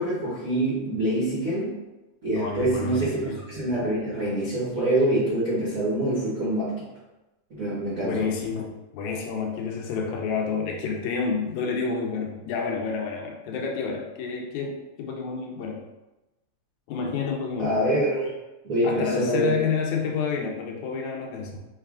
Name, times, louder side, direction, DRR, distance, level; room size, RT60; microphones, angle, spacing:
voice 1, 0.0-1.8 2.2-6.8 7.5-8.3 17.6-18.3 18.6-19.5, right 1 dB, 65° right, -11 dB, 0.8 m, -25 dB
voice 2, 2.4-3.4 8.0-15.9 16.9-17.8 18.8-21.6, left 5 dB, 80° left, 0 dB, 1.9 m, -29 dB
5.2 x 2.3 x 2.4 m, 1.0 s
omnidirectional pair, 3.4 m